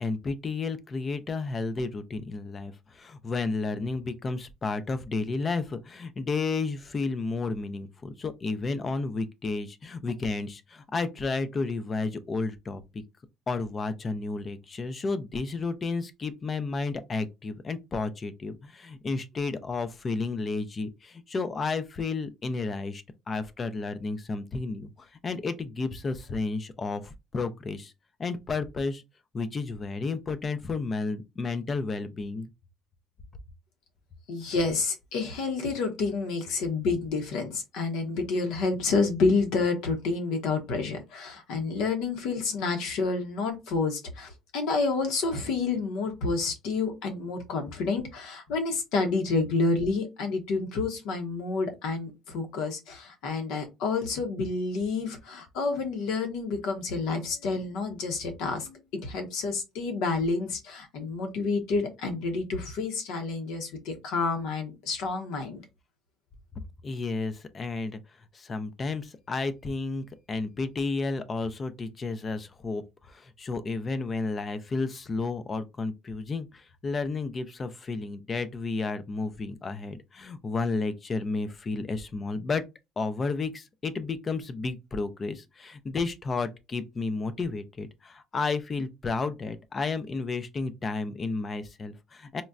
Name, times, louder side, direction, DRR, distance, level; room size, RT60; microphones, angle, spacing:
voice 1, 0.0-12.8 13.5-27.9 28.2-29.0 29.3-32.5 66.8-68.0 68.3-82.6 83.0-92.4, left 3 dB, 20° left, 0.4 m, -32 dB
voice 2, 34.3-65.6, left 4 dB, 70° left, 0.9 m, -29 dB
4.0 x 2.1 x 2.4 m
cardioid pair, 165°, 0 cm